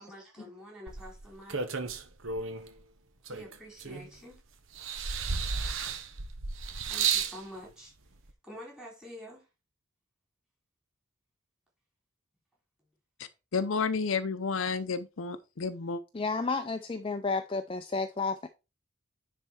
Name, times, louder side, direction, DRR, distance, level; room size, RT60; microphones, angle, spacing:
voice 1, 0.0-1.7 3.3-4.4 6.9-8.0 8.4-9.5 12.8-12.9, equal, 5° right, 4.2 m, -47 dB
sound 1, 0.9-2.7 3.3-4.3 4.8-7.4 8.3-8.4, right 6 dB, 70° right, 1.2 m, -33 dB
voice 2, 13.5-16.0, left 5 dB, 70° left, 0.6 m, -31 dB
voice 3, 16.1-18.5, left 4 dB, 25° left, 0.5 m, -31 dB
9.9 x 4.3 x 4.4 m
head